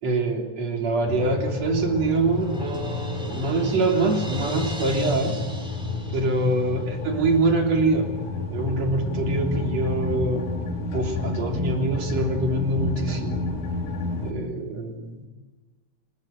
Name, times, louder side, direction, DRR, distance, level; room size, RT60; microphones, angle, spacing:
voice 1, 0.0-5.4 6.1-8.1 8.5-10.5 10.9-13.5 14.2-15.3, right 2 dB, 60° right, 2 dB, 4.6 m, -24 dB
sound 1, 1.1-14.3, left 3 dB, 75° left, 5.0 m, -30 dB
Crash cymbal, 1.5-6.9, equal, ahead, 4.1 m, -40 dB
27.0 x 21.5 x 9.0 m, 1.2 s
omnidirectional pair, 3.4 m